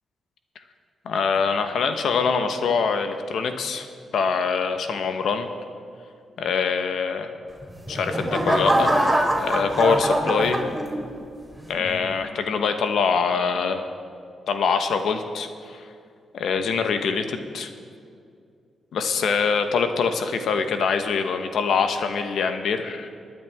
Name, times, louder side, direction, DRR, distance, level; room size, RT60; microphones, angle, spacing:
voice 1, 1.0-3.9 4.1-5.5 6.4-7.3 7.9-10.7 11.7-13.9 14.5-15.9 16.3-17.7 18.9-23.1, left 5 dB, 75° left, 7 dB, 1.1 m, -24 dB
sound 1, 7.6-11.2 11.7-12.1, right 1 dB, 5° right, 2.8 m, -23 dB
27.5 x 9.5 x 3.6 m, 2.4 s
supercardioid pair, 45°, 0 cm